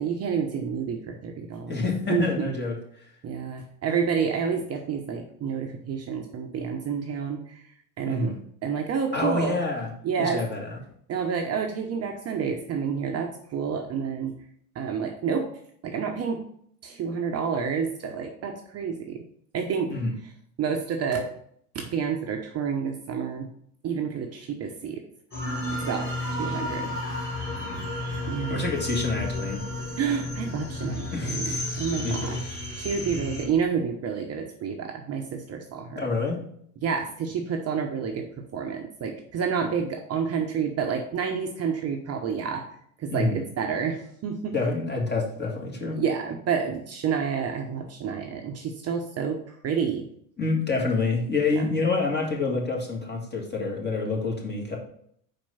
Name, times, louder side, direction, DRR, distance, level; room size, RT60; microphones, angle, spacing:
voice 1, 0.0-1.8 2.1-2.6 3.2-7.6 8.0-8.3 8.6-9.6 10.0-10.4 11.1-14.4 14.7-15.5 15.8-16.5 16.8-19.2 19.5-19.9 20.6-21.3 21.7-23.5 23.8-25.0 25.7-26.1 26.4-27.0 28.3-28.6 30.0-36.1 36.8-42.6 43.0-44.6 45.9-50.1 51.5-51.6, right 6 dB, 30° right, 3 dB, 0.8 m, -29 dB
voice 2, 1.7-3.0 8.1-8.4 9.1-9.9 10.2-10.8 19.9-20.1 27.5-27.9 28.5-29.6 31.1-32.4 36.0-36.5 43.1-43.4 44.5-46.0 50.4-54.8, left 3 dB, 20° left, -1 dB, 2.0 m, -28 dB
sound 1, 25.3-33.4, left 2 dB, 85° left, 2.6 m, -32 dB
5.2 x 4.4 x 5.7 m, 0.66 s
hypercardioid pair, 80°, 47 cm